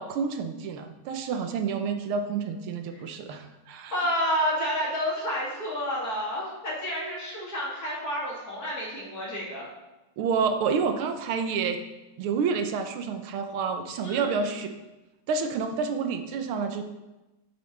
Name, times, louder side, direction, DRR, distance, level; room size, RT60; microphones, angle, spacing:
voice 1, 0.0-3.9 10.2-11.8 12.2-14.7 15.3-16.8, right 5 dB, 85° right, 6 dB, 1.7 m, -29 dB
voice 2, 3.9-9.7 14.0-14.5, equal, 45° left, -5 dB, 2.9 m, -30 dB
9.3 x 8.1 x 3.3 m, 1.0 s
omnidirectional pair, 2.3 m